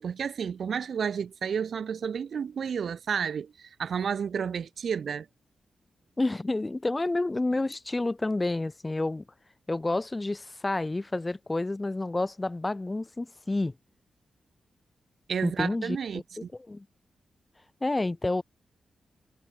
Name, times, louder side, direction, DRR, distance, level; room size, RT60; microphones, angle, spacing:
voice 1, 0.0-5.3 15.3-16.5, right 7 dB, 70° right, 1.1 m, -31 dB
voice 2, 6.2-9.2 9.7-13.7 15.4-16.2 16.5-16.9 17.8-18.4, left 2 dB, 20° left, 2.0 m, -29 dB
wide cardioid pair, 100°, 0 cm